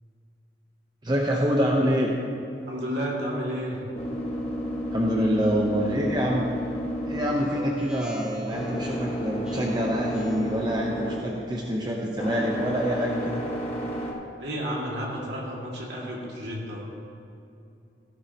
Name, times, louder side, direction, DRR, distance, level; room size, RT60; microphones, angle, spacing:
voice 1, 1.0-2.1 4.9-6.5 7.0-13.4, equal, 25° right, -1 dB, 0.8 m, -26 dB
voice 2, 2.7-3.8 14.4-16.8, equal, 75° right, -4 dB, 2.2 m, -31 dB
sound 1, 3.0-14.1, equal, 35° left, 1.4 m, -32 dB
Speech synthesizer, 7.3-10.6, equal, 5° right, 1.2 m, -40 dB
14.5 x 11.5 x 2.9 m, 2.7 s
head